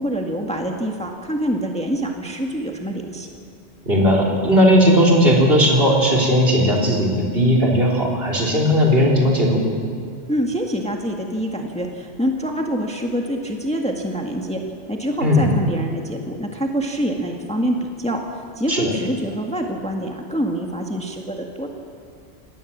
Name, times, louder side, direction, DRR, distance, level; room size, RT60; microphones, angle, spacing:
voice 1, 0.0-3.3 10.3-14.6 14.9-18.2 18.5-21.7, equal, 5° left, 1 dB, 1.6 m, -25 dB
voice 2, 3.9-9.6 15.2-15.5 18.7-18.9, equal, 55° right, 0 dB, 3.9 m, -16 dB
20.5 x 18.0 x 7.4 m, 2.3 s
omnidirectional pair, 1.2 m